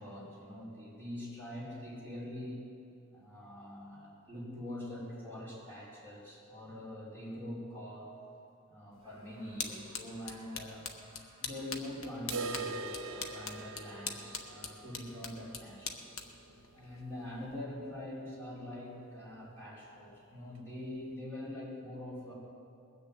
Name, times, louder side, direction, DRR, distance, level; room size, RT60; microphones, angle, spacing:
voice 1, 0.0-2.6 3.1-8.1 8.7-10.9 11.4-16.2 16.7-22.3, left 1 dB, 10° left, -8 dB, 4.8 m, -44 dB
sound 1, 8.9-17.6, left 5 dB, 75° left, 1.2 m, -44 dB
Screaming, 8.9-15.4, right 1 dB, 25° right, 2.8 m, -64 dB
sound 2, 12.3-18.1 18.4-18.5 18.9-19.0 19.5-19.6 20.4-20.5, right 3 dB, 70° right, 0.8 m, -43 dB
20.5 x 6.9 x 8.2 m, 2.5 s
head